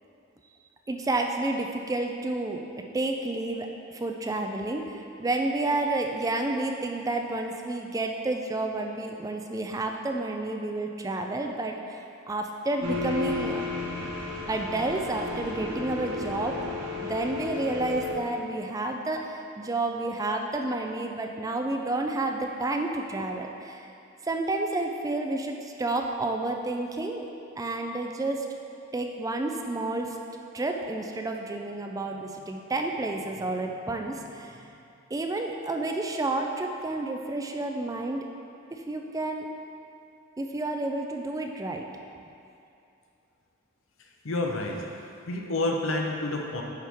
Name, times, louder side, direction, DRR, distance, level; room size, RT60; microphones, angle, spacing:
voice 1, 0.9-2.6 2.9-12.0 12.3-13.6 14.5-16.6 17.0-23.8 24.2-27.2 27.6-28.5 28.9-30.2 30.5-34.6 35.1-38.3 38.7-39.5 40.4-41.8, right 2 dB, 15° right, 3 dB, 0.4 m, -30 dB
Dark Ghostly Mine Fatory Atmo Atmosphere, 12.8-18.1, left 3 dB, 70° right, 1.4 m, -33 dB
voice 2, 44.2-44.8 45.3-46.6, left 2 dB, 75° left, 1 dB, 0.8 m, -28 dB
10.5 x 4.5 x 3.5 m, 2.7 s
head